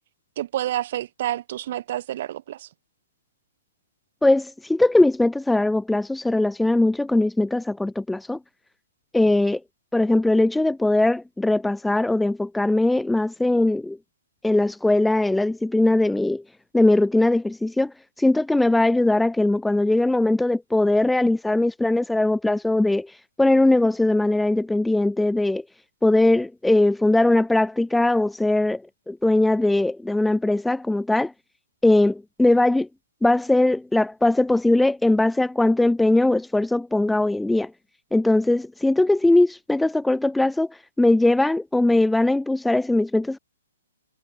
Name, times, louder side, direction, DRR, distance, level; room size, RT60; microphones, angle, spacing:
voice 1, 0.4-2.7, right 13 dB, 45° right, 5.1 m, -29 dB
voice 2, 4.2-8.4 9.1-9.6 9.9-14.0 14.4-16.4 16.7-25.6 26.0-28.8 29.1-31.3 31.8-32.9 33.2-37.7 38.1-43.4, left 2 dB, 5° left, 1.0 m, -20 dB
figure-of-eight pair, 120°, 0 cm